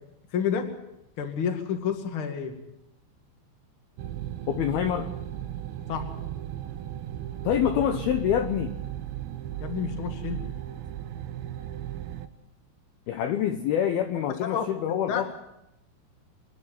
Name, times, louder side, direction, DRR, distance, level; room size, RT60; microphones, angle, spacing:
voice 1, 0.3-0.7 1.2-2.5 5.9-6.0 9.6-10.5 14.4-14.7 15.1-15.2, left 7 dB, 40° left, 5 dB, 2.0 m, -29 dB
sound 1, 4.0-12.3, right 12 dB, 75° right, 2.3 m, -36 dB
voice 2, 4.5-5.1 7.4-8.8 13.1-15.3, left 10 dB, 75° left, 7 dB, 2.4 m, -26 dB
26.5 x 10.5 x 9.3 m, 0.88 s
omnidirectional pair, 5.3 m